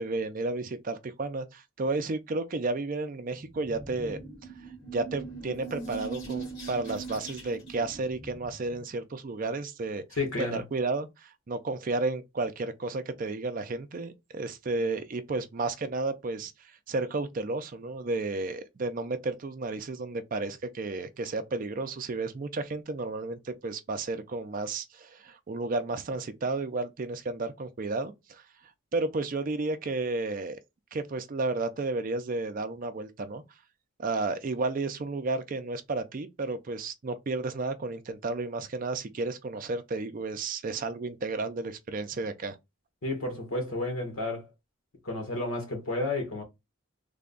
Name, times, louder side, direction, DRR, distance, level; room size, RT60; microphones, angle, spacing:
voice 1, 0.0-4.2 4.9-10.0 10.4-16.5 16.9-28.4 28.9-30.6 30.9-33.4 34.0-42.6, right 3 dB, 40° right, 0.4 m, -32 dB
sound 1, 3.4-8.8, right 3 dB, 55° left, 1.9 m, -41 dB
voice 2, 10.2-10.6 43.0-44.5 45.0-46.4, left 2 dB, 75° left, 1.4 m, -31 dB
3.4 x 2.2 x 3.7 m
head